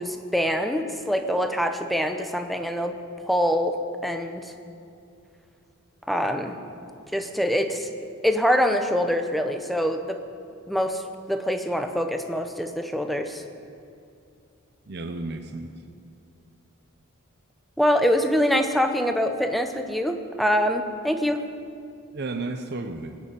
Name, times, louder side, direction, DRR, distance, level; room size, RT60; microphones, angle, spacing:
voice 1, 0.0-3.0 3.3-4.5 6.1-6.6 7.1-7.9 8.2-10.2 10.7-11.0 11.3-13.4 17.8-21.4, equal, ahead, 6 dB, 0.8 m, -24 dB
voice 2, 14.9-15.8 22.1-23.2, right 3 dB, 50° right, 6 dB, 0.7 m, -33 dB
20.5 x 6.9 x 9.0 m, 2.5 s
head